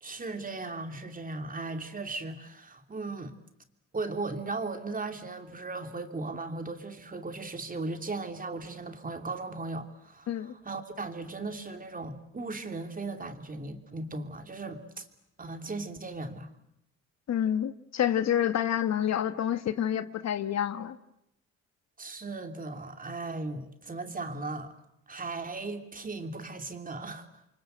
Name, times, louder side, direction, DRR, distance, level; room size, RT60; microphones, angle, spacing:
voice 1, 0.0-3.3 3.9-15.1 15.4-16.5 22.0-24.7 25.1-27.3, right 3 dB, 30° right, 2.9 m, -37 dB
voice 2, 17.3-21.0, left 10 dB, 60° left, 1.4 m, -28 dB
29.0 x 24.5 x 7.9 m
cardioid pair, 90°, 30 cm